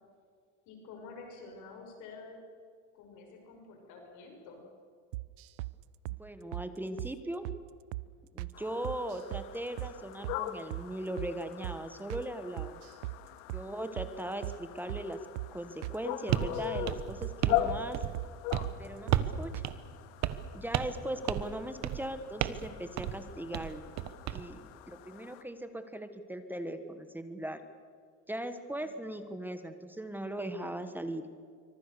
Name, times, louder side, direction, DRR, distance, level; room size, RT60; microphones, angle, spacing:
voice 1, 0.7-2.4 2.9-4.6 28.7-29.3, left 4 dB, 55° left, 2 dB, 6.0 m, -49 dB
sound 1, 5.1-5.7 6.1-6.2 6.5-6.7 7.0-7.1 7.4-7.6 7.9-8.1 8.4-8.5 8.8-9.5 9.8-9.9 10.2-10.4 10.7-10.9 11.2-11.3 11.6-11.8 12.1-12.3 12.6-13.2 13.5-13.7 14.0-14.1 14.4-14.6 14.9-15.1 15.4-15.5 15.8-16.0 16.3-16.9 17.2-17.4 17.7-17.8 18.1-18.3 18.6-18.8 19.1-19.2 19.5-19.7, right 19 dB, 85° right, 0.8 m, -38 dB
voice 2, 6.1-7.5 8.3-12.8 13.5-15.2 15.5-18.0 18.8-19.6 20.5-23.8 24.3-27.6 28.3-31.3, right 1 dB, 5° right, 9 dB, 1.3 m, -39 dB
sound 2, 8.5-25.4, left 13 dB, 80° left, 2.0 m, -41 dB
sound 3, 16.3-16.5 16.9-17.7 17.9-18.2 18.5-18.7 19.1-19.4 19.6-19.7 20.2-20.5 20.7-21.0 21.3-21.5 21.8-22.1 22.4-22.7 23.0-23.2 23.5-24.4, right 13 dB, 50° right, 1.4 m, -32 dB
26.0 x 25.0 x 6.8 m, 2.1 s
cardioid pair, 145°, 36 cm